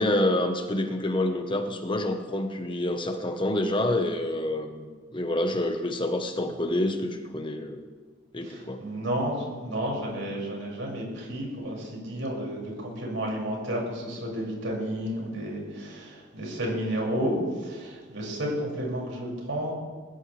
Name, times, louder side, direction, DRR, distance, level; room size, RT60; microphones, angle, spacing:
voice 1, 0.0-7.8 8.3-8.8, left 1 dB, 25° left, 5 dB, 1.1 m, -27 dB
voice 2, 8.5-17.3 17.6-19.7, equal, 75° right, -3 dB, 6.1 m, -31 dB
21.5 x 16.5 x 3.4 m, 1.5 s
head